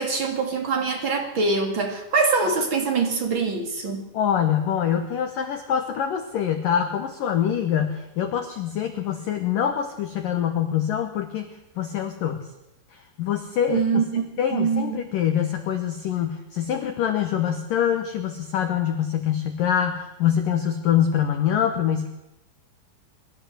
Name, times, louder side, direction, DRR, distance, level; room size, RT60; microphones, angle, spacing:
voice 1, 0.0-4.0 13.7-14.2 14.5-15.0, right 4 dB, 35° right, 3 dB, 2.2 m, -24 dB
voice 2, 4.1-12.5 12.9-22.1, left 9 dB, 85° left, 7 dB, 1.9 m, -25 dB
26.0 x 12.5 x 8.0 m, 0.90 s
omnidirectional pair, 5.9 m